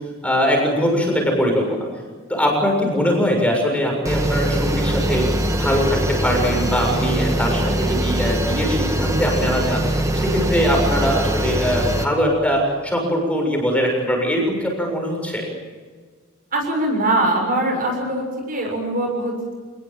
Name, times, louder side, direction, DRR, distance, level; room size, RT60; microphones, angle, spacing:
voice 1, 0.2-1.9 2.3-5.3 5.6-9.8 10.1-15.5, equal, 5° left, 1 dB, 7.0 m, -21 dB
sound 1, 4.1-12.1, right 1 dB, 15° right, 1.8 m, -22 dB
voice 2, 16.5-19.5, right 1 dB, 40° right, 2 dB, 7.0 m, -22 dB
27.5 x 20.5 x 7.7 m, 1.5 s
head